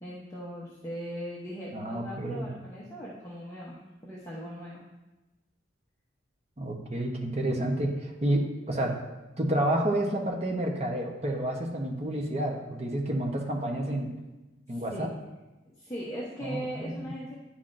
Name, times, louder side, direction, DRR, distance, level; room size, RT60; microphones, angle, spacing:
voice 1, 0.0-4.8 14.7-15.1 15.8-17.3, equal, 15° left, -7 dB, 0.8 m, -39 dB
voice 2, 1.7-2.5 6.6-8.9 9.4-14.1 14.7-15.1 16.4-17.1, right 1 dB, 30° right, 0 dB, 0.9 m, -30 dB
9.8 x 5.7 x 2.6 m, 1.1 s
head